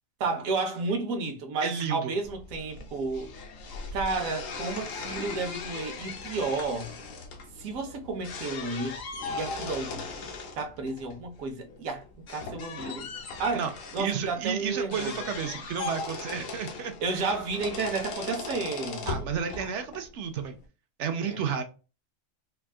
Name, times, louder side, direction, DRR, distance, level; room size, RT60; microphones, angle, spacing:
voice 1, 0.2-3.3 3.9-6.9 7.6-9.0 9.3-12.0 12.3-13.1 13.4-13.6 13.9-15.2 17.0-19.3 21.2-21.5, right 3 dB, 80° right, 1.2 m, -32 dB
voice 2, 1.6-2.1 13.5-13.7 14.0-17.3 19.1-20.6 21.0-21.6, right 7 dB, 65° right, 0.9 m, -32 dB
sound 1, 2.2-20.7, left 4 dB, 70° left, 1.1 m, -39 dB
3.5 x 2.3 x 2.3 m
omnidirectional pair, 1.4 m